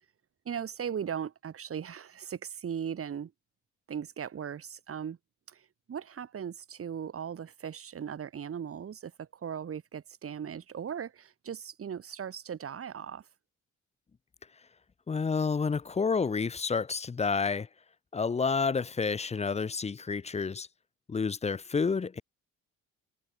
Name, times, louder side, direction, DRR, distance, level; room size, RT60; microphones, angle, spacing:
voice 1, 0.5-3.3 3.9-5.2 5.5-13.3, right 8 dB, 50° right, 2.6 m, -38 dB
voice 2, 15.1-17.7 18.1-20.7 21.1-22.2, left 5 dB, 20° left, 0.6 m, -29 dB
cardioid pair, 90°, 30 cm